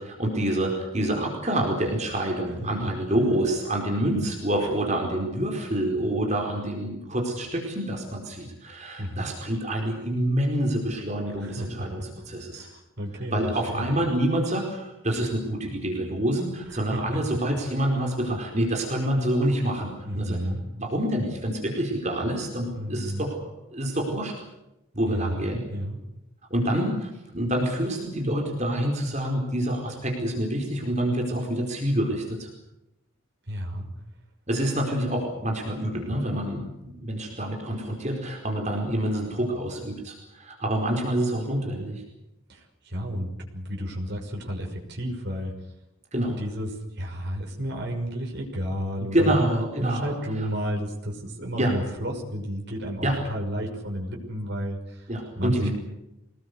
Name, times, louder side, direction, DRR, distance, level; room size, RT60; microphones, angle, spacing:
voice 1, 0.0-12.7 13.3-20.4 20.8-24.3 24.9-25.6 26.5-32.5 34.5-42.0 46.1-46.4 49.1-50.1 51.6-51.7 53.0-53.2 55.1-55.7, right 1 dB, 35° right, 1 dB, 4.6 m, -27 dB
voice 2, 2.6-3.1 4.0-4.3 9.0-9.3 11.3-12.2 12.5-13.4 13.7-13.9 16.7-17.4 20.0-20.6 22.7-23.4 25.1-26.0 33.5-33.9 42.5-45.5 46.4-46.7 47.0-49.4 49.8-55.7, equal, 50° right, 0 dB, 6.0 m, -32 dB
25.5 x 20.0 x 8.2 m, 0.91 s
head